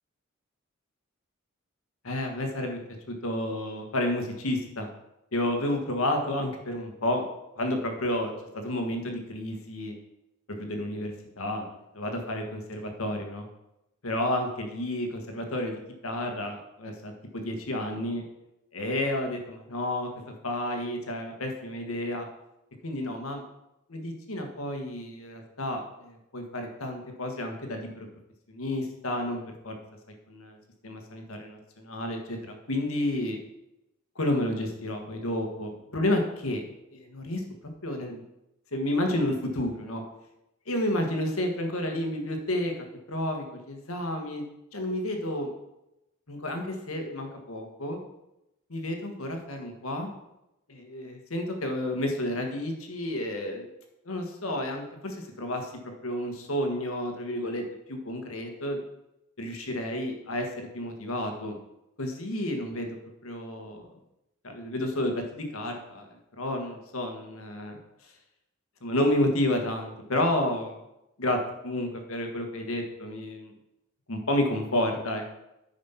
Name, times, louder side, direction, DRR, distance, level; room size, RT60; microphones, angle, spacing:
voice 1, 2.0-2.8 3.1-4.9 5.3-7.2 7.6-9.9 10.6-11.7 11.9-13.4 14.0-18.2 18.7-22.3 22.8-23.4 23.9-28.1 28.5-29.8 30.3-30.6 30.8-33.4 34.1-36.6 36.9-37.4 37.8-38.2 38.7-40.0 40.7-42.7 43.1-44.4 44.7-45.5 46.3-48.0 48.7-50.1 50.7-53.7 54.0-55.7 56.0-57.6 57.9-58.8 59.4-61.6 62.0-62.9 63.2-63.9 64.4-66.1 66.4-67.8 68.8-70.8 71.2-73.5 74.1-75.3, left 1 dB, 80° left, 3 dB, 1.6 m, -31 dB
9.5 x 5.3 x 5.7 m, 0.90 s
head